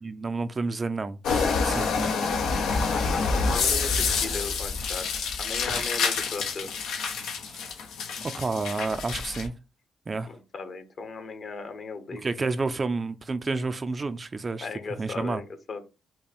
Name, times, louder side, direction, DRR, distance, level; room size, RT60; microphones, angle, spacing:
voice 1, 0.0-2.1 8.4-9.5 10.1-10.3 12.1-14.7 15.0-15.4, right 3 dB, 30° right, 0.4 m, -30 dB
sound 1, 1.2-9.5, left 5 dB, 85° left, 1.0 m, -27 dB
voice 2, 2.9-5.1 5.4-6.7 10.3-12.2 14.6-15.8, left 4 dB, 50° left, 1.1 m, -37 dB
5.5 x 2.2 x 4.4 m
cardioid pair, 90°, 0 cm